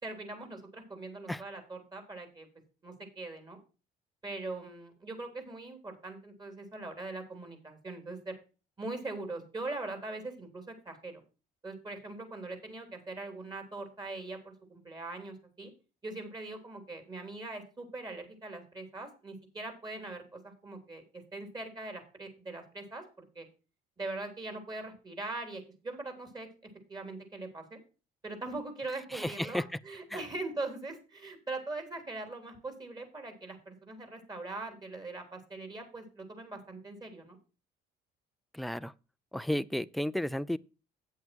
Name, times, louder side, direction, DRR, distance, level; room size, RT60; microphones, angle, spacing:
voice 1, 0.0-2.5 2.8-3.6 4.2-8.4 8.8-11.2 11.6-15.7 16.0-21.0 21.3-23.5 24.0-26.5 26.9-27.8 28.2-37.4, right 2 dB, 25° right, 3.5 m, -41 dB
voice 2, 29.1-29.6 30.1-30.2 38.5-38.9 39.3-40.6, left 1 dB, ahead, 0.4 m, -33 dB
9.1 x 8.2 x 4.5 m
cardioid pair, 110°, 17 cm